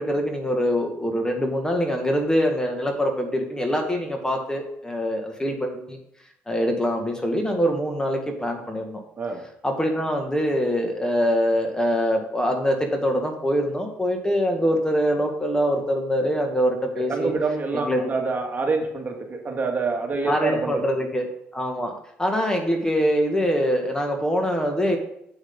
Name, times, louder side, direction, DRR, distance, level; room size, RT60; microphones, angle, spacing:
voice 1, 0.0-6.0 6.5-9.0 9.6-17.3 17.7-18.1 20.2-21.3 21.5-21.9 22.2-25.0, equal, 15° left, 3 dB, 2.1 m, -24 dB
voice 2, 17.1-20.8, right 4 dB, 35° right, 2 dB, 2.1 m, -26 dB
8.3 x 8.0 x 4.0 m, 0.76 s
supercardioid pair, 70°, 5 cm